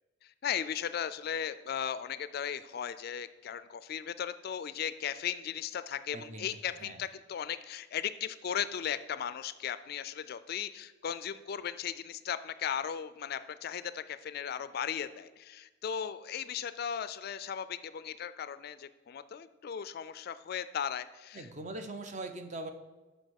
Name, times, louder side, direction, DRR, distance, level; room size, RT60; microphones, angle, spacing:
voice 1, 0.2-21.5, left 8 dB, 50° left, 14 dB, 0.3 m, -37 dB
voice 2, 6.1-6.5 6.8-7.0 21.3-22.7, right 2 dB, 35° right, 7 dB, 0.7 m, -41 dB
6.5 x 5.4 x 6.4 m, 1.2 s
head